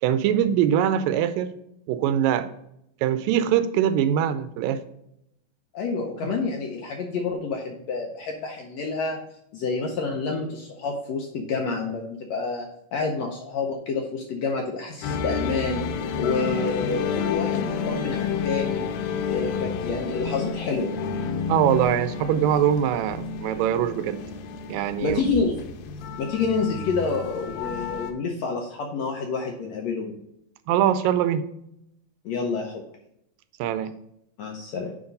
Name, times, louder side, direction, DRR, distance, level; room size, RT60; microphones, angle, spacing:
voice 1, 0.0-1.5 1.9-2.5 3.0-4.8 6.2-6.3 21.5-24.2 24.7-25.2 30.7-31.5 33.6-33.9, right 10 dB, 85° right, 12 dB, 2.3 m, -22 dB
voice 2, 5.7-9.2 9.5-15.8 16.2-18.8 19.3-20.9 25.0-25.6 26.2-30.1 32.2-32.8 34.4-34.9, left 4 dB, 75° left, 2 dB, 1.6 m, -28 dB
sound 1, 15.0-28.1, left 6 dB, 90° left, 2.5 m, -30 dB
9.6 x 3.6 x 5.3 m, 0.78 s
omnidirectional pair, 4.0 m